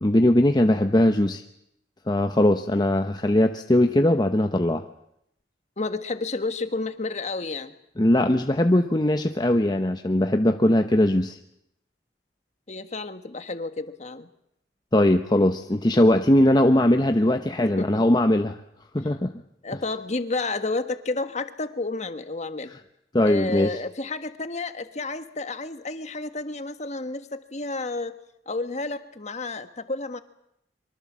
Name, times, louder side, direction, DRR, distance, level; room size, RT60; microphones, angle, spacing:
voice 1, 0.0-1.4 2.1-4.8 8.0-11.4 14.9-18.6 18.9-19.3 23.1-23.8, left 1 dB, 25° left, 6 dB, 0.9 m, -20 dB
voice 2, 5.8-7.7 12.7-14.3 17.6-18.0 19.6-22.8 23.2-28.1 28.4-30.2, left 3 dB, 40° left, 10 dB, 1.5 m, -31 dB
24.0 x 24.0 x 7.5 m, 0.77 s
head